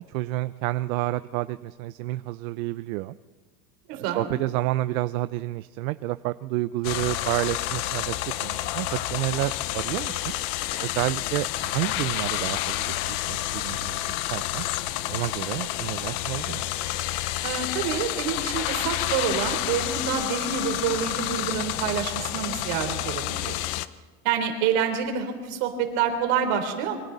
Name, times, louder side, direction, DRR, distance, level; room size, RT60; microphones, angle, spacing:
voice 1, 0.0-3.1 3.9-10.3 10.8-14.0 14.3-14.6 15.1-16.7, right 17 dB, 75° right, 13 dB, 0.7 m, -30 dB
voice 2, 3.9-4.3 17.4-23.6 24.2-27.0, right 7 dB, 55° right, 5 dB, 3.7 m, -27 dB
sound 1, 6.8-23.9, left 15 dB, 50° left, 0.7 m, -29 dB
27.0 x 24.0 x 4.0 m, 1.4 s
supercardioid pair, 165°, 42 cm